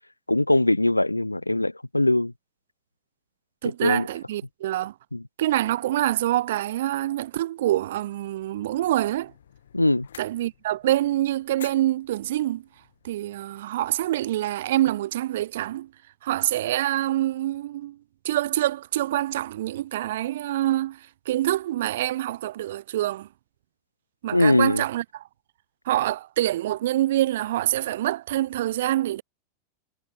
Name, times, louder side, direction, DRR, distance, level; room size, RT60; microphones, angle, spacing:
voice 1, 0.3-2.3 3.8-4.1 5.1-5.2 9.7-10.1 24.3-24.8, left 2 dB, 85° left, 0.5 m, -21 dB
voice 2, 3.6-4.9 5.4-9.3 10.2-12.6 13.0-15.9 16.2-18.0 18.2-21.0 21.3-23.3 24.2-25.2 25.9-29.2, right 14 dB, 55° right, 0.6 m, -26 dB
sound 1, 8.2-13.6, left 9 dB, 65° left, 1.5 m, -51 dB
figure-of-eight pair, 90°, 0 cm